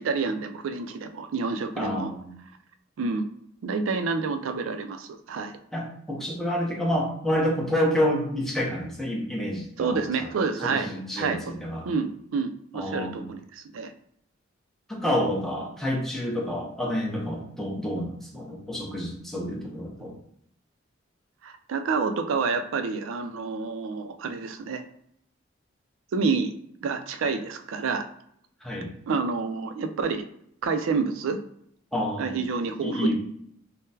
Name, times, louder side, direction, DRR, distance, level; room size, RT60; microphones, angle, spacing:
voice 1, 0.0-2.1 3.0-3.3 3.6-5.5 9.8-11.4 11.8-13.9 21.4-24.8 26.1-26.5 26.8-28.1 29.1-30.3 30.6-31.4 32.2-33.1, right 4 dB, 85° right, 8 dB, 0.4 m, -28 dB
voice 2, 1.8-2.3 5.7-10.3 10.6-11.9 12.7-13.3 14.9-20.1 28.6-28.9 31.9-32.4 32.8-33.1, equal, ahead, -2 dB, 0.6 m, -28 dB
3.7 x 2.0 x 2.7 m, 0.70 s
head